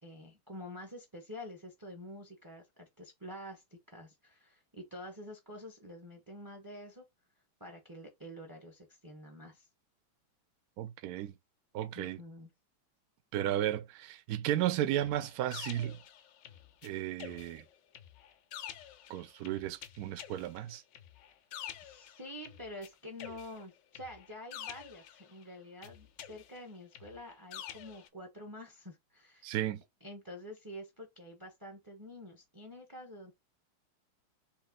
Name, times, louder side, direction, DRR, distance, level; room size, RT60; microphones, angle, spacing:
voice 1, 0.0-7.0 7.6-9.7 11.9-12.5 21.8-29.6 30.0-33.3, left 1 dB, 20° right, 0.6 m, -48 dB
voice 2, 10.8-11.3 11.7-12.2 13.3-16.0 16.8-17.6 19.1-20.8 29.4-29.8, right 12 dB, 75° right, 0.9 m, -34 dB
sound 1, 14.9-16.9 17.2-22.9 23.2-25.4 25.8-28.1, left 10 dB, 70° left, 1.2 m, -48 dB
4.3 x 2.7 x 3.7 m
omnidirectional pair, 2.2 m